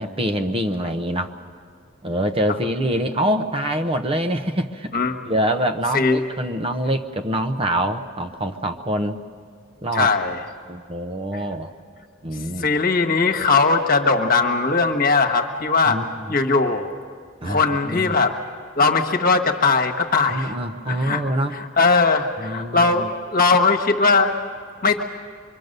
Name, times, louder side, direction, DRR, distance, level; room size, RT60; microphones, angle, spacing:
voice 1, 0.0-1.3 2.0-4.9 5.3-9.2 9.8-10.1 10.7-11.7 12.2-12.7 15.9-16.4 17.4-18.1 20.3-21.6 22.4-23.1, right 1 dB, 30° right, 7 dB, 0.8 m, -25 dB
voice 2, 9.9-10.4 11.3-11.4 12.6-16.0 16.3-16.9 17.4-18.4 18.8-20.5 20.9-21.2 21.5-24.3 24.8-25.0, left 4 dB, 50° left, 5 dB, 1.4 m, -19 dB
25.0 x 23.5 x 6.7 m, 2.1 s
head